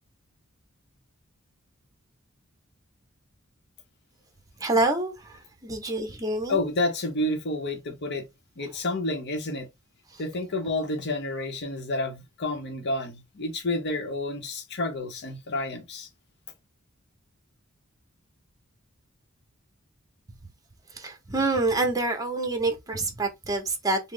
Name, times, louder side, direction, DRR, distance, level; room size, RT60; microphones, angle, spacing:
voice 1, 4.6-6.6 20.9-24.0, right 2 dB, 15° right, 0.8 m, -27 dB
voice 2, 6.5-8.3 8.6-9.7 10.2-16.1, left 2 dB, 55° left, 0.8 m, -30 dB
3.6 x 2.0 x 3.6 m
head